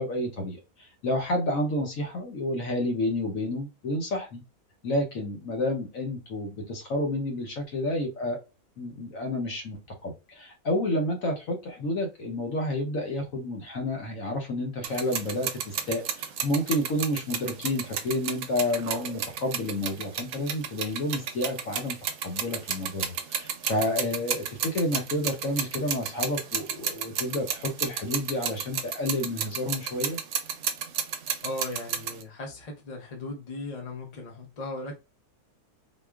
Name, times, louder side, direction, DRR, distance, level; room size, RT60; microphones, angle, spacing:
voice 1, 0.0-4.4 4.8-8.4 8.8-22.0 22.2-30.2, left 1 dB, 60° left, 1.2 m, -30 dB
sound 1, 14.8-32.2, right 8 dB, 65° right, 0.8 m, -32 dB
voice 2, 31.4-34.9, left 2 dB, 30° left, 0.8 m, -37 dB
3.8 x 2.9 x 2.3 m
omnidirectional pair, 1.7 m